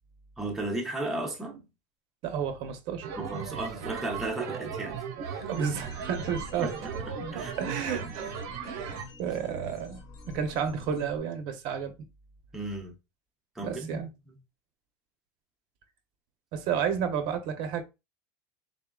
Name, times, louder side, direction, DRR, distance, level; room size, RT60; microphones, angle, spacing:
voice 1, 0.4-1.6 3.2-5.5 6.6-7.5 12.5-12.9 13.6-14.4, right 2 dB, 5° right, 0.6 m, -35 dB
voice 2, 2.2-3.1 5.5-6.7 7.3-10.0 10.3-11.9 13.6-14.1 16.5-17.8, right 7 dB, 50° right, 0.7 m, -32 dB
sound 1, 3.0-9.0, right 6 dB, 85° right, 0.8 m, -37 dB
sound 2, 5.5-11.2, left 2 dB, 45° left, 0.9 m, -46 dB
3.8 x 3.6 x 2.3 m
cardioid pair, 175°, 10 cm